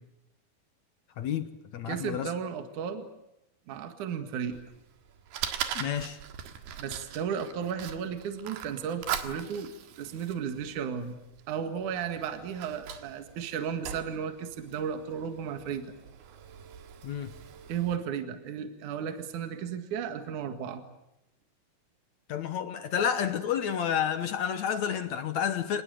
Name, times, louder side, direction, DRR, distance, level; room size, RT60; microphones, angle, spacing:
voice 1, 1.2-2.3 5.7-6.2 17.0-17.3 22.3-25.8, left 8 dB, 65° left, 2.0 m, -30 dB
voice 2, 1.9-3.1 3.7-4.6 6.8-9.7 10.0-11.2 11.5-16.0 17.7-20.8, right 7 dB, 60° right, 3.0 m, -34 dB
Fire, 4.5-18.0, right 9 dB, 85° right, 3.6 m, -41 dB
27.0 x 20.0 x 9.3 m
omnidirectional pair, 4.4 m